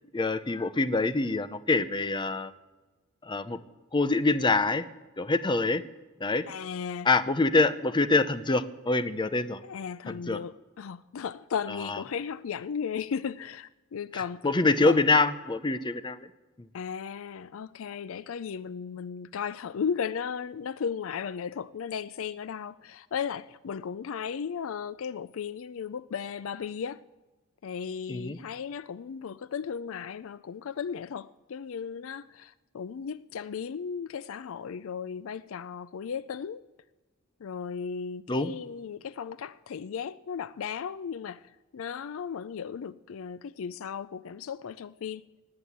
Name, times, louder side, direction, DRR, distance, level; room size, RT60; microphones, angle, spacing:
voice 1, 0.1-2.5 3.2-3.6 3.9-4.8 5.2-5.8 6.2-6.5 7.1-9.6 10.1-10.4 11.9-12.0 14.1-16.3 16.6-16.7 28.1-28.4 38.3-38.5, left 3 dB, 20° left, 0.6 m, -25 dB
voice 2, 6.5-7.1 9.6-15.0 16.7-27.0 27.6-36.6 37.4-45.2, left 7 dB, 70° left, 0.4 m, -36 dB
19.0 x 7.7 x 8.5 m
head